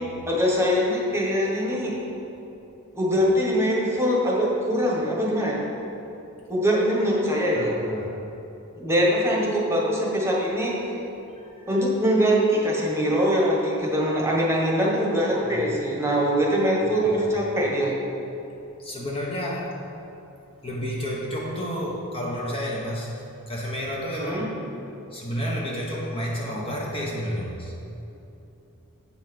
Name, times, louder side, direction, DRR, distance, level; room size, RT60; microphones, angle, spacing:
voice 1, 0.2-2.0 2.9-5.6 6.5-7.8 8.8-10.9 11.7-17.9 24.2-24.5, equal, 10° right, -3 dB, 1.3 m, -23 dB
voice 2, 7.6-8.1 11.4-11.7 15.5-15.6 17.0-17.3 18.8-19.7 20.6-24.6 25.1-27.7, equal, 25° left, -3 dB, 1.1 m, -31 dB
8.7 x 5.7 x 5.9 m, 2.9 s
head